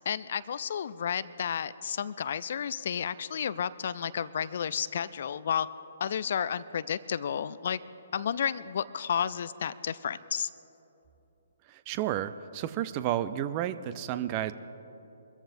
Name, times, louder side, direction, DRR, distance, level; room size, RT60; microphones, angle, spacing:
voice 1, 0.1-5.7 6.0-7.8 8.1-10.5, left 8 dB, 55° left, 17 dB, 0.4 m, -32 dB
voice 2, 11.7-14.5, right 12 dB, 30° right, 13 dB, 0.5 m, -31 dB
23.0 x 14.0 x 2.7 m, 3.0 s
figure-of-eight pair, 135°, 0 cm